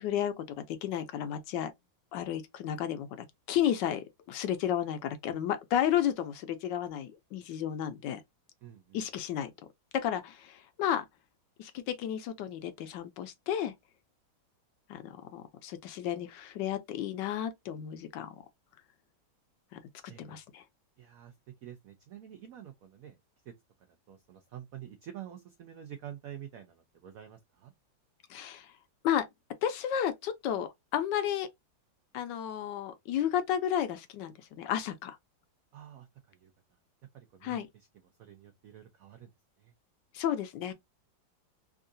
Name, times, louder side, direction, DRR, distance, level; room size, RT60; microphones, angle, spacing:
voice 1, 0.0-1.7 2.1-8.2 8.9-9.5 9.9-11.0 11.6-13.7 14.9-18.3 19.7-19.8 20.2-20.6 28.3-28.7 29.0-29.3 29.6-31.5 32.1-35.2 37.4-37.7 40.1-40.7, left 10 dB, 75° left, 1.2 m, -32 dB
voice 2, 8.6-9.1 20.1-20.4 21.0-21.3 21.6-23.2 23.5-23.6 24.1-27.7 35.7-36.5 37.1-37.9 38.2-39.3 39.6-39.7, right 10 dB, 80° right, 0.7 m, -48 dB
3.6 x 2.4 x 2.5 m
omnidirectional pair, 2.1 m